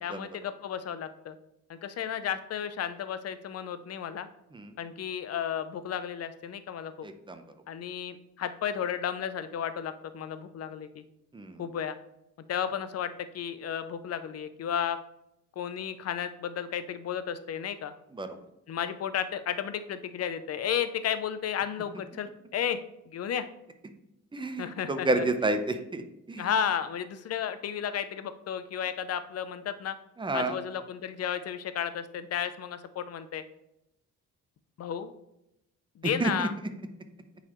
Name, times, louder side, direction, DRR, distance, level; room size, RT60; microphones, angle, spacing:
voice 1, 0.0-1.3 1.7-4.3 4.8-7.1 7.7-11.0 11.6-12.0 12.5-15.0 15.6-17.9 18.7-22.8 23.1-23.5 24.6-25.3 26.4-30.0 30.3-33.4 34.8-35.1 36.0-36.5, left 8 dB, 55° left, 11 dB, 0.6 m, -33 dB
voice 2, 7.0-7.4 11.3-11.6 18.1-18.3 24.3-26.5 30.2-30.6 36.0-36.5, right 2 dB, 15° right, 7 dB, 0.7 m, -30 dB
9.1 x 4.1 x 3.1 m, 0.84 s
cardioid pair, 90°, 30 cm